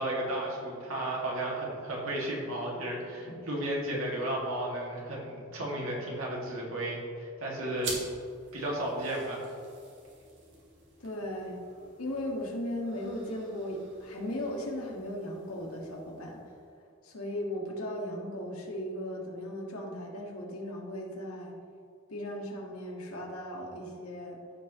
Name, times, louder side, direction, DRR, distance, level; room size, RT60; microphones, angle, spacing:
voice 1, 0.0-7.9 8.5-9.4, right 1 dB, 80° right, -4 dB, 2.3 m, -33 dB
sound 1, 7.8-16.8, right 3 dB, 55° right, 2.1 m, -47 dB
voice 2, 11.0-11.6 12.0-16.4 17.0-21.5 22.1-24.4, left 1 dB, 90° left, -1 dB, 1.7 m, -37 dB
15.5 x 5.2 x 3.2 m, 2.4 s
head